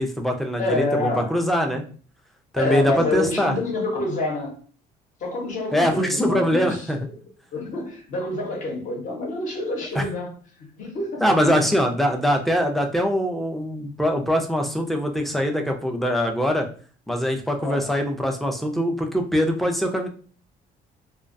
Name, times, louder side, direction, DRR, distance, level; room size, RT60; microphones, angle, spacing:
voice 1, 0.0-1.8 2.5-3.5 5.7-7.0 10.0-10.1 11.2-16.7 17.1-20.1, equal, ahead, 3 dB, 0.4 m, -23 dB
voice 2, 0.6-1.4 2.6-4.5 5.2-7.2 7.5-10.3 10.6-11.4 17.6-17.9, left 2 dB, 50° left, 1 dB, 0.9 m, -27 dB
2.3 x 2.2 x 2.5 m, 0.42 s
cardioid pair, 110°, 17 cm